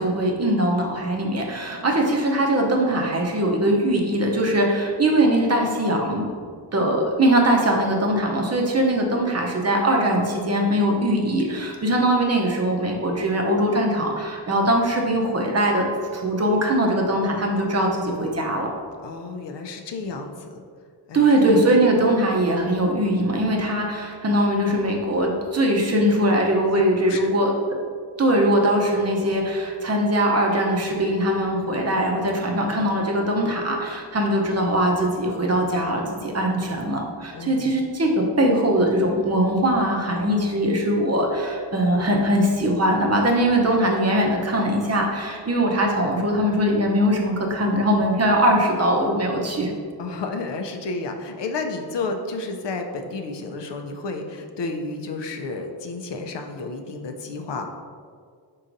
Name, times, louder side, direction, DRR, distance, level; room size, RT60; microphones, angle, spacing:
voice 1, 0.0-6.3 6.7-18.7 21.1-27.5 28.2-49.7, right 1 dB, 35° right, 0 dB, 0.7 m, -21 dB
voice 2, 19.0-20.6 21.1-21.5 25.9-26.0 27.0-27.3 37.3-37.8 50.0-57.7, left 3 dB, 75° left, 4 dB, 0.6 m, -31 dB
4.7 x 4.0 x 2.6 m, 2.1 s
wide cardioid pair, 90°, 43 cm